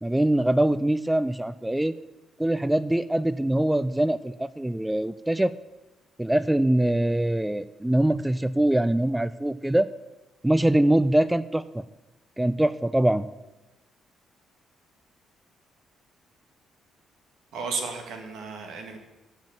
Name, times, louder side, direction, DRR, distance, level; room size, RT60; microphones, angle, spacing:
voice 1, 0.0-1.9 2.4-5.5 6.2-9.9 10.4-11.8 12.4-13.3, right 1 dB, 5° right, 15 dB, 0.3 m, -23 dB
voice 2, 17.5-19.0, right 4 dB, 80° right, 4 dB, 1.7 m, -33 dB
7.7 x 7.3 x 7.5 m, 1.0 s
cardioid pair, 90°, 0 cm